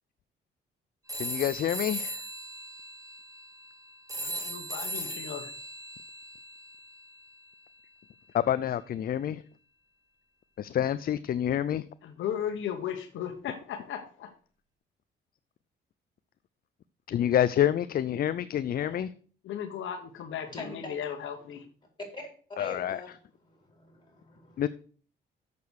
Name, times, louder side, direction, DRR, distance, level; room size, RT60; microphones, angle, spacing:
sound 1, 1.1-7.2, right 1 dB, 15° right, 2.4 m, -38 dB
voice 1, 1.2-2.2 8.3-9.4 10.6-11.8 17.1-19.1 22.6-23.0 24.6-24.7, left 10 dB, 50° left, 15 dB, 0.4 m, -27 dB
voice 2, 4.2-5.5 12.0-14.3 18.8-19.0 19.4-21.6, left 9 dB, 75° left, 5 dB, 1.2 m, -36 dB
voice 3, 20.5-21.0 22.1-23.1 23.5-24.7, left 2 dB, 20° left, 1 dB, 4.6 m, -44 dB
6.9 x 6.7 x 6.3 m, 0.43 s
cardioid pair, 90°, 20 cm